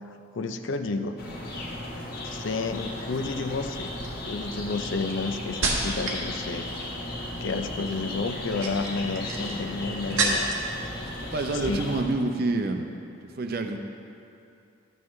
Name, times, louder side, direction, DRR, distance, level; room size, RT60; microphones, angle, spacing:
voice 1, 0.3-1.2 2.2-3.9 4.2-6.7 7.4-10.5 11.6-12.0, left 3 dB, 70° left, 8 dB, 0.5 m, -31 dB
sound 1, 1.2-12.0, left 1 dB, 50° left, 1.3 m, -35 dB
sound 2, 2.8-3.2 3.9-6.3 6.6-7.1 8.3-10.7 11.0-11.7 12.0-12.2, right 3 dB, 90° right, 1.3 m, -31 dB
voice 2, 11.3-12.9 13.2-13.8, right 2 dB, 50° right, 5 dB, 0.6 m, -27 dB
12.0 x 7.9 x 3.2 m, 2.6 s
head